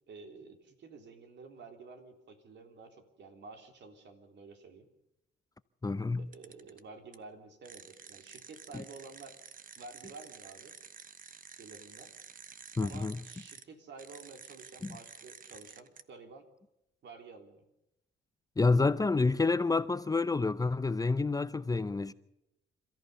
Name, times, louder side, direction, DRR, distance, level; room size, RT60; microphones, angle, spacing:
voice 1, 0.1-4.9 6.2-9.4 9.8-10.8 11.6-12.1 12.8-16.5 17.0-17.6, right 4 dB, 60° right, 3.4 m, -51 dB
voice 2, 5.8-6.2 12.8-13.2 14.8-15.0 18.6-22.1, left 3 dB, 20° left, 0.7 m, -28 dB
sound 1, 6.3-6.8 7.1-7.2 7.6-13.6 14.0-16.0, right 6 dB, 45° right, 1.1 m, -51 dB
27.0 x 14.0 x 6.8 m
cardioid pair, 90°, 20 cm